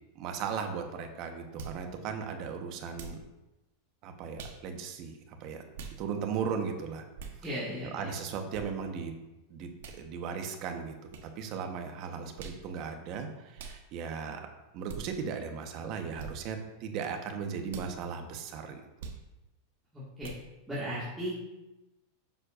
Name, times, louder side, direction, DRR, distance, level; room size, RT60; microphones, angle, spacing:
voice 1, 0.1-3.2 4.0-5.1 5.4-5.6 6.0-7.0 7.9-9.1 9.5-10.9 11.2-14.5 14.7-18.8, right 6 dB, 45° right, 5 dB, 1.0 m, -37 dB
sound 1, 1.6-1.8 2.9-3.2 4.4-4.6 5.7-6.0 7.2-7.4 8.5-8.7 9.8-10.0 11.1-11.3 12.4-12.6 13.6-13.8 14.9-15.0 16.2-16.3 17.7-17.9 19.0-19.2 20.2-20.4, right 5 dB, 80° right, 1.0 m, -43 dB
voice 2, 7.4-8.1 19.9-20.3 20.7-21.4, equal, 5° right, -11 dB, 1.8 m, -36 dB
7.5 x 6.4 x 2.5 m, 0.99 s
supercardioid pair, 145°, 0 cm